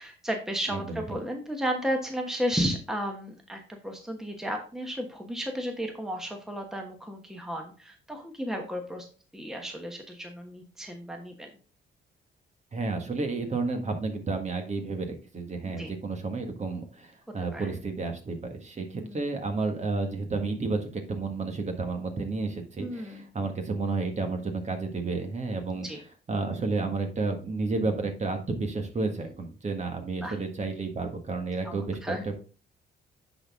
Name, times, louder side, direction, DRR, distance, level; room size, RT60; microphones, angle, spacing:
voice 1, 0.0-9.1 9.3-11.5 15.8-15.9 17.5-17.7 19.0-19.2 22.8-23.3 25.8-26.0 29.0-29.3 30.2-30.4 31.6-32.2, equal, ahead, 3 dB, 1.2 m, -33 dB
voice 2, 0.7-1.0 12.7-25.9 26.3-32.3, right 3 dB, 35° right, 5 dB, 1.6 m, -31 dB
9.8 x 4.2 x 3.6 m, 0.38 s
cardioid pair, 90°, 20 cm